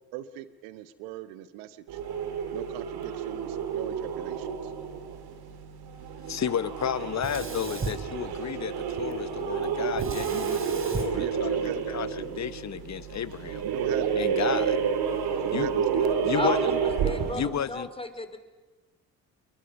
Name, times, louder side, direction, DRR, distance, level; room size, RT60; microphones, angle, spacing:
voice 1, 0.1-2.0 2.5-4.7 11.2-12.0 13.6-14.2 15.4-16.0, right 13 dB, 80° right, 1.2 m, -40 dB
sound 1, 1.9-17.6, right 7 dB, 65° right, 2.7 m, -30 dB
voice 2, 6.3-13.6 14.1-14.8 15.5-15.8 16.2-16.8 17.3-17.9, left 8 dB, 40° left, 1.1 m, -32 dB
Sink (filling or washing), 7.2-8.8 10.0-12.2, right 3 dB, 30° right, 3.8 m, -38 dB
voice 3, 16.3-17.4 17.7-18.4, left 2 dB, 15° left, 3.3 m, -33 dB
27.0 x 22.5 x 5.4 m
hypercardioid pair, 55°, 42 cm